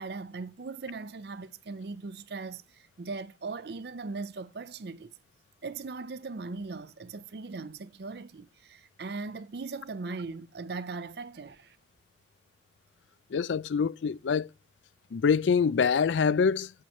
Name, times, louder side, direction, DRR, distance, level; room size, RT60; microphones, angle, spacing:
voice 1, 0.0-5.1 5.6-11.8, right 4 dB, 60° right, 0.5 m, -39 dB
voice 2, 13.3-14.5 15.1-16.7, left 6 dB, 90° left, 0.4 m, -25 dB
7.9 x 5.5 x 4.3 m
head